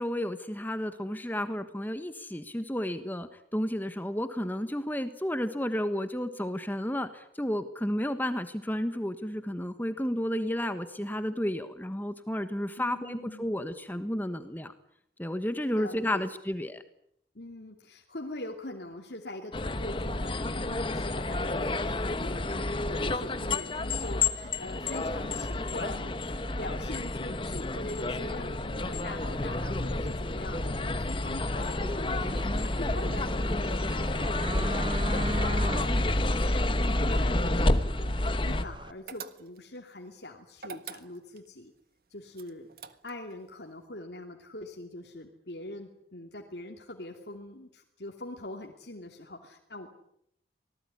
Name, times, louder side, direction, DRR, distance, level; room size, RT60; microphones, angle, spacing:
voice 1, 0.0-14.7 15.2-16.8, equal, 10° left, 9 dB, 1.4 m, -32 dB
voice 2, 12.8-13.6 15.7-16.3 17.3-41.7 42.1-42.7 43.0-49.9, left 1 dB, 70° left, 2 dB, 2.8 m, -43 dB
sound 1, 19.5-38.6, left 2 dB, 30° left, 1.2 m, -29 dB
sound 2, 31.5-38.9, right 2 dB, 25° right, 1.0 m, -41 dB
sound 3, 39.1-39.8 40.6-41.5 42.3-43.3, right 6 dB, 55° right, 1.6 m, -44 dB
26.0 x 19.0 x 9.8 m, 0.74 s
head